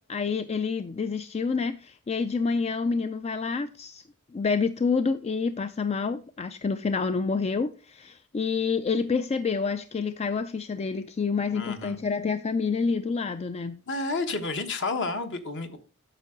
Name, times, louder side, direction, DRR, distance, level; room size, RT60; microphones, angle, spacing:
voice 1, 0.0-4.0 4.3-13.8, left 5 dB, 30° left, 0.3 m, -28 dB
voice 2, 11.5-12.1 13.9-15.8, left 3 dB, 55° left, 1.2 m, -31 dB
9.1 x 6.5 x 3.7 m
head